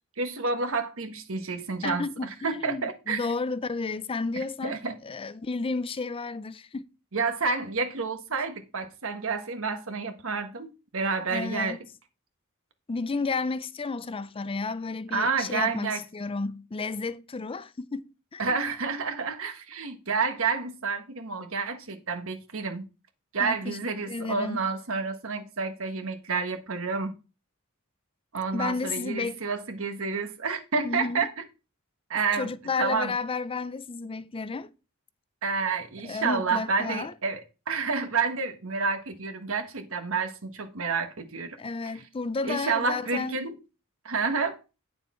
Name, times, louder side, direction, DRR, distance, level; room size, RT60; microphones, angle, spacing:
voice 1, 0.2-3.2 4.6-5.0 7.1-11.8 15.1-16.0 18.4-22.8 23.3-27.1 28.3-31.3 32.1-32.5 32.8-33.1 35.4-41.6 41.9-42.0 42.4-43.6 44.0-44.6, right 4 dB, 70° right, 1.4 m, -29 dB
voice 2, 1.8-4.8 5.0-6.9 11.3-11.8 12.9-18.6 23.4-23.8 24.1-24.6 28.5-29.4 30.8-31.3 32.3-34.7 36.0-37.1 41.6-43.4, left 4 dB, 25° left, 0.4 m, -32 dB
9.4 x 6.9 x 4.3 m
head